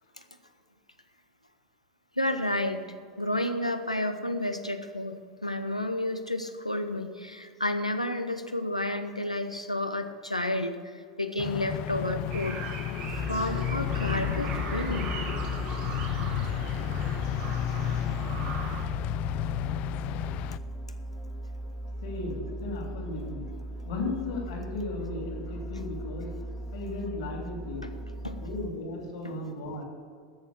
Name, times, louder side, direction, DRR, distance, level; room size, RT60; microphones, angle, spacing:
voice 1, 2.2-2.9 3.2-12.6 13.1-15.2 27.8-27.9 28.2-28.4 29.2-29.4, left 1 dB, 90° left, 8 dB, 0.9 m, -31 dB
sound 1, 11.4-20.6, left 12 dB, 40° left, 0.4 m, -32 dB
sound 2, 12.3-18.8, right 5 dB, 45° right, 1.9 m, -40 dB
sound 3, 13.0-28.7, right 1 dB, 15° left, 1.8 m, -38 dB
voice 2, 22.0-23.5 23.9-26.3 26.7-27.9 28.2-29.8, left 2 dB, 60° left, 1 dB, 3.0 m, -35 dB
13.5 x 6.9 x 8.1 m, 2.1 s
figure-of-eight pair, 85°, 3 cm